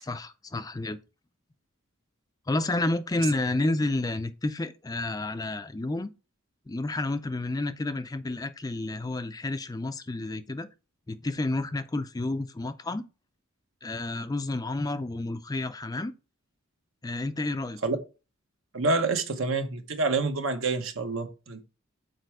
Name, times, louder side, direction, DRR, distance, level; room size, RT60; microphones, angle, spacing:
voice 1, 0.0-1.0 2.5-6.1 6.7-10.7 11.1-13.0 13.8-16.1 17.0-17.8, left 2 dB, 20° left, 0.4 m, -30 dB
voice 2, 18.7-21.6, right 3 dB, 70° right, 1.1 m, -27 dB
6.6 x 4.4 x 4.7 m
head